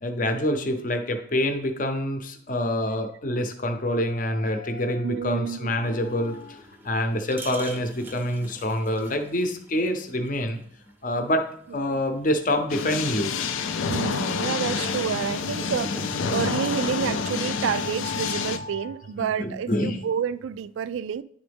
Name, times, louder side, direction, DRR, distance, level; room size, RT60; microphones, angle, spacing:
voice 1, 0.0-10.6 11.0-11.4 11.7-15.7 16.1-18.9 19.4-20.0, left 1 dB, 45° left, 0.7 m, -28 dB
voice 2, 5.0-5.8 11.7-12.0 13.9-21.2, right 7 dB, 80° right, 0.3 m, -29 dB
sound 1, 5.8-18.0, right 1 dB, 10° right, 0.6 m, -45 dB
sound 2, 12.7-18.6, left 5 dB, 90° left, 0.5 m, -28 dB
10.5 x 3.8 x 3.5 m
head